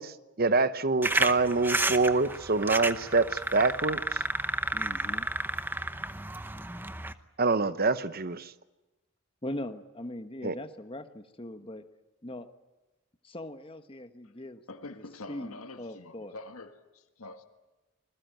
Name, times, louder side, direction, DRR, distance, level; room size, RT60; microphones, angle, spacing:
voice 1, 0.0-4.2 7.4-8.5 10.4-10.5, right 3 dB, 45° right, 0.9 m, -26 dB
sound 1, 1.0-7.1, right 2 dB, 10° right, 0.8 m, -31 dB
voice 2, 4.7-5.3 9.4-11.8 12.2-12.5 13.2-14.6 15.3-16.4, left 1 dB, 25° left, 1.3 m, -40 dB
voice 3, 14.7-17.4, left 2 dB, 85° left, 1.7 m, -45 dB
26.0 x 21.0 x 9.2 m
head